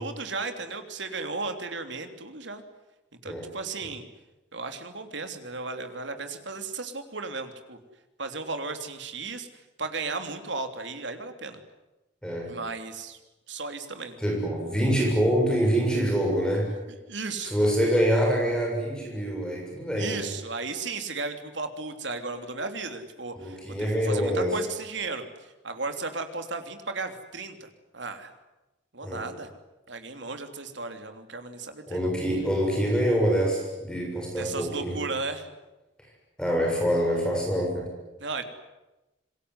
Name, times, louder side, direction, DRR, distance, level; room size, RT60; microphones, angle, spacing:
voice 1, 0.0-2.6 3.2-4.0 4.5-7.8 8.2-9.5 9.8-11.6 12.4-13.2 13.5-14.2 16.9-17.5 20.0-23.6 23.9-25.2 25.6-27.7 27.9-28.3 28.9-29.5 29.9-32.1 34.4-35.5 38.2-38.4, right 3 dB, 75° right, 7 dB, 3.2 m, -35 dB
voice 2, 14.2-16.7 17.4-20.2 23.4-24.5 29.0-29.2 31.9-35.0 36.4-37.8, equal, 5° left, -1 dB, 7.3 m, -25 dB
26.5 x 22.0 x 9.8 m, 1.0 s
head